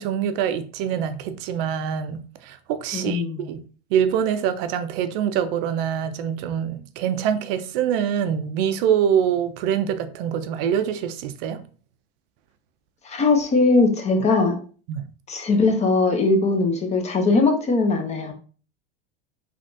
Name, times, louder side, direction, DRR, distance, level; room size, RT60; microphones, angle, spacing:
voice 1, 0.0-3.6 3.9-11.6 14.9-15.0, right 8 dB, 60° right, 0.4 m, -24 dB
voice 2, 2.9-3.5 13.0-14.6 15.3-18.3, left 3 dB, 20° left, 0.5 m, -20 dB
3.3 x 2.4 x 2.5 m
supercardioid pair, 115°, 32 cm